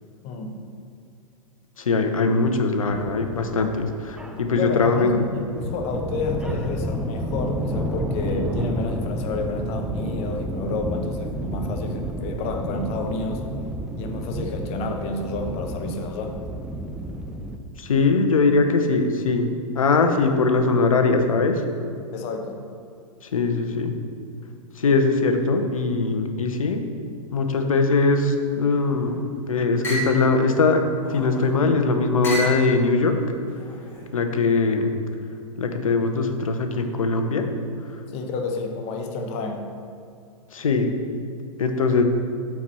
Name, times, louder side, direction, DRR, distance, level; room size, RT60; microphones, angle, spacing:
voice 1, 0.2-0.5 4.6-13.5 14.0-16.4 22.1-22.6 38.1-39.7, left 3 dB, 35° left, 4 dB, 1.1 m, -30 dB
voice 2, 1.8-5.2 17.8-19.5 19.7-21.6 23.3-24.0 24.8-26.8 27.3-30.8 31.1-33.2 34.1-34.9 35.6-37.5 40.5-40.9 41.6-42.0, left 3 dB, 70° left, 6 dB, 0.9 m, -21 dB
sound 1, 2.9-17.6, right 1 dB, 5° right, 0.5 m, -31 dB
sound 2, 28.9-29.3 29.8-30.2 31.0-31.6 32.2-32.6 33.5-34.1, right 1 dB, 10° left, 1.9 m, -32 dB
12.5 x 4.7 x 4.3 m, 2.5 s
figure-of-eight pair, 100°, 18 cm